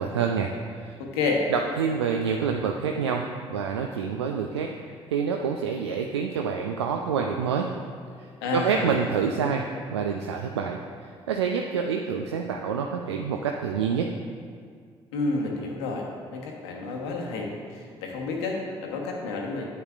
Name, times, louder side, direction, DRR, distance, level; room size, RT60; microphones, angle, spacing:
voice 1, 0.0-1.0 1.5-7.7 8.2-14.1, right 6 dB, 85° right, 2 dB, 0.4 m, -27 dB
voice 2, 1.0-1.4 8.4-9.1 15.1-19.7, left 3 dB, 75° left, 0 dB, 1.1 m, -30 dB
9.4 x 8.6 x 2.4 m, 2.1 s
figure-of-eight pair, 50°, 14 cm